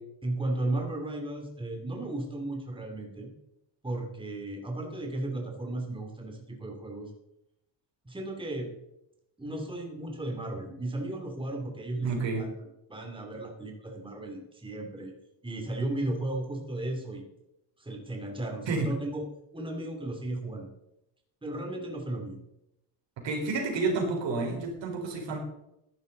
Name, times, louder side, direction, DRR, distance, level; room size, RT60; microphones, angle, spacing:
voice 1, 0.2-3.3 3.8-7.1 8.0-8.7 9.4-15.1 15.4-17.2 17.8-19.3 19.5-20.7 21.4-22.4, right 2 dB, 10° right, 1 dB, 2.8 m, -35 dB
voice 2, 12.0-12.4 18.7-18.9 23.2-25.4, right 3 dB, 75° right, 1 dB, 4.6 m, -30 dB
15.0 x 11.5 x 4.0 m, 0.82 s
cardioid pair, 140°, 45 cm